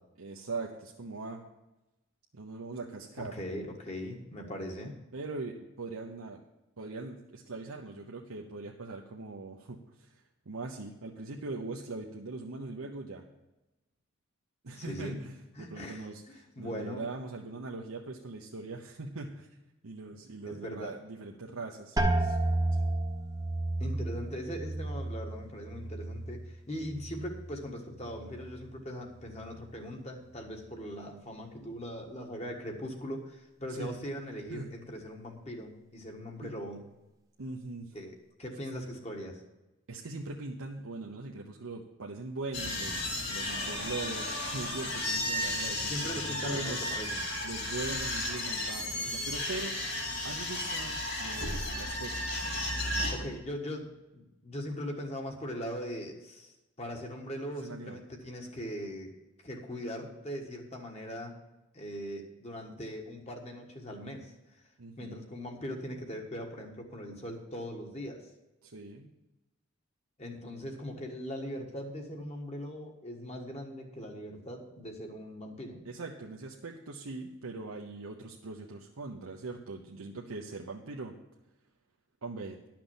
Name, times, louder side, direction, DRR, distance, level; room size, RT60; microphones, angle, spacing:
voice 1, 0.2-1.4 2.3-3.4 5.1-6.4 6.8-13.2 14.6-19.5 19.8-22.4 22.7-22.8 33.8-34.0 34.5-34.7 36.4-36.5 37.4-38.0 39.9-45.9 46.2-46.8 47.4-52.1 52.4-53.4 57.6-58.0 64.8-65.2 68.6-69.1 75.8-81.1 82.2-82.6, right 3 dB, 85° right, 0 dB, 0.9 m, -41 dB
voice 2, 3.2-4.9 14.7-15.2 15.5-16.1 16.6-17.0 20.4-21.0 23.8-36.8 37.9-39.4 45.9-47.2 53.1-53.9 54.1-56.5 56.8-59.1 59.4-61.3 61.7-64.3 65.0-68.2 70.2-75.9, equal, 30° left, 2 dB, 1.5 m, -40 dB
sound 1, 22.0-27.6 27.9-28.6 29.2-29.6, right 2 dB, 15° right, 0.9 m, -32 dB
sound 2, 42.5-53.1, left 1 dB, 50° left, 3.1 m, -34 dB
11.5 x 6.0 x 7.1 m, 0.99 s
head